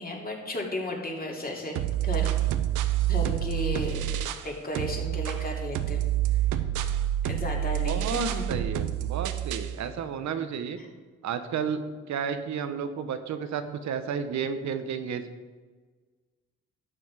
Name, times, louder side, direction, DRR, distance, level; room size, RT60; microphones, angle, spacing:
voice 1, 0.0-1.8 2.0-2.4 3.1-4.1 4.4-6.0 7.3-8.4 10.8-10.9, left 1 dB, 30° left, -1 dB, 2.8 m, -34 dB
sound 1, 1.8-4.5 4.8-9.8, right 12 dB, 90° right, 0.7 m, -28 dB
voice 2, 7.8-10.8 11.2-11.8 12.1-15.2, right 7 dB, 65° right, 9 dB, 1.0 m, -32 dB
12.0 x 7.1 x 4.8 m, 1.4 s
cardioid pair, 90°, 30 cm